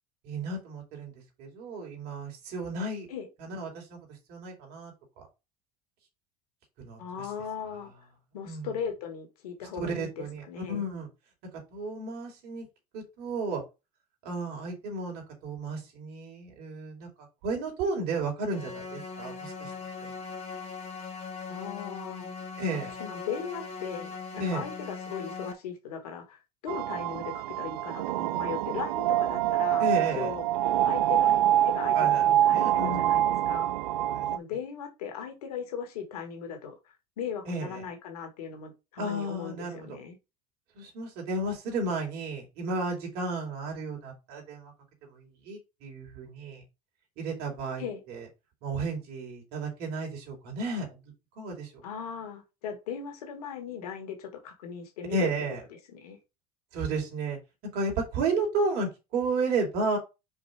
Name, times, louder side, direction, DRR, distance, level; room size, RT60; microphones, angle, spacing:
voice 1, 0.2-1.1 1.4-3.1 3.4-5.3 6.8-7.0 8.4-8.7 9.7-11.1 11.7-12.7 12.9-13.6 14.2-17.1 17.4-19.7 20.0-20.1 22.6-22.9 24.4-24.6 29.8-30.3 31.9-33.1 34.0-34.3 37.5-37.8 39.0-39.9 40.7-44.7 45.1-46.6 47.2-48.3 48.6-51.0 51.4-51.8 55.1-55.6 56.7-57.4 57.7-60.0, right 3 dB, 60° right, 3.2 m, -33 dB
voice 2, 7.0-7.9 8.3-10.9 21.5-22.3 23.0-29.9 30.1-30.4 30.9-33.8 34.3-40.2 47.8-48.0 51.8-55.3 55.9-56.2, left 7 dB, 75° left, 2.2 m, -38 dB
sound 1, 18.5-25.5, left 5 dB, 35° left, 2.0 m, -40 dB
sound 2, 26.7-34.4, right 12 dB, 75° right, 0.5 m, -25 dB
5.0 x 4.8 x 5.0 m
hypercardioid pair, 75°, 20 cm